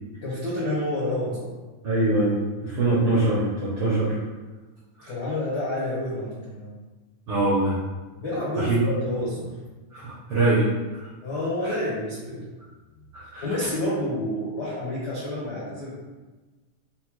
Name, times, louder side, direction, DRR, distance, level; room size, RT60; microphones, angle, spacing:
voice 1, 0.2-1.5 5.0-6.7 8.2-9.5 11.2-12.4 13.2-15.9, left 1 dB, 75° left, -8 dB, 0.9 m, -29 dB
voice 2, 1.8-4.2 5.0-5.1 7.3-7.8 8.5-8.8 9.9-10.6 11.6-11.7 13.1-13.4, right 2 dB, 75° right, -8 dB, 1.2 m, -23 dB
5.3 x 2.0 x 4.6 m, 1.2 s
omnidirectional pair, 3.6 m